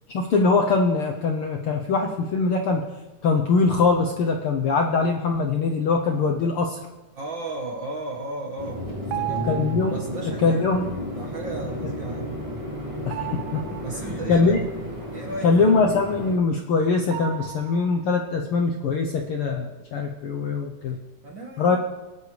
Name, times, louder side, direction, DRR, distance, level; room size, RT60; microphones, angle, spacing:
voice 1, 0.1-2.9 3.2-6.8 9.5-9.9 10.4-10.9 13.0-13.6 14.3-14.6 15.4-21.0 21.6-21.8, left 4 dB, 70° left, 2 dB, 1.3 m, -22 dB
sound 1, 6.1-6.4 9.1-10.2 13.1-14.2 17.1-18.3, right 16 dB, 80° right, 2.0 m, -34 dB
voice 2, 7.1-8.8 9.1-9.5 9.9-10.7 11.1-12.4 13.8-14.6 15.1-15.7 21.2-21.8, right 2 dB, 55° right, 1 dB, 1.4 m, -34 dB
sound 2, 8.6-16.4, equal, 15° right, 1.7 m, -33 dB
22.5 x 11.0 x 3.3 m, 1.1 s
omnidirectional pair, 3.5 m